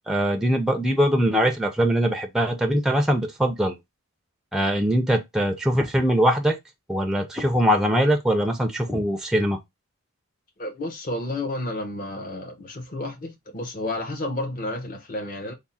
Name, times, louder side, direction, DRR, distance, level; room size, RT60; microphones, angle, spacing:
voice 1, 0.1-3.8 4.5-6.6 6.9-9.6, equal, ahead, 0.4 m, -22 dB
voice 2, 10.6-15.5, left 1 dB, 40° left, 0.8 m, -31 dB
3.5 x 2.1 x 4.0 m
head